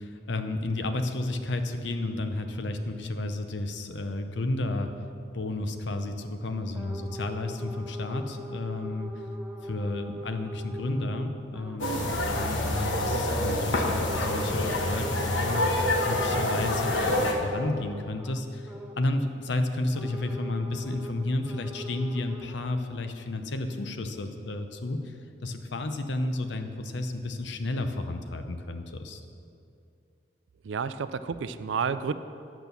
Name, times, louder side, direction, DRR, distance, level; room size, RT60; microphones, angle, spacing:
voice 1, 0.0-4.9 5.3-9.1 9.6-25.1 25.4-29.2, left 2 dB, 70° left, 7 dB, 0.7 m, -32 dB
sound 1, 6.7-11.8 12.1-12.5 13.7-19.0 19.9-22.6, right 1 dB, 10° right, 0.5 m, -42 dB
sound 2, 11.8-17.3, left 1 dB, 85° left, 1.2 m, -27 dB
voice 2, 30.6-32.1, right 6 dB, 80° right, 13 dB, 0.4 m, -30 dB
9.2 x 6.1 x 6.8 m, 2.5 s
head